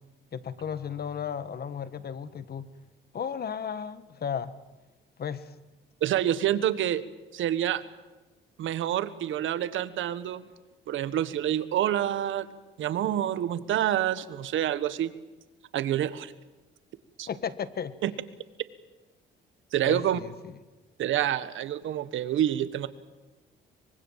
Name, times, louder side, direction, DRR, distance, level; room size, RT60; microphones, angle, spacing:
voice 1, 0.3-2.7 3.1-4.5 5.2-5.5 17.3-18.0 19.8-20.3, left 7 dB, 50° left, 14 dB, 1.6 m, -34 dB
voice 2, 6.0-7.0 7.3-7.8 8.6-10.5 10.9-12.5 12.8-15.1 15.7-16.3 17.2-17.3 18.0-18.1 19.7-20.2 21.0-22.9, right 11 dB, 75° right, 14 dB, 1.5 m, -27 dB
24.0 x 22.5 x 7.5 m, 1.1 s
cardioid pair, 90°, 20 cm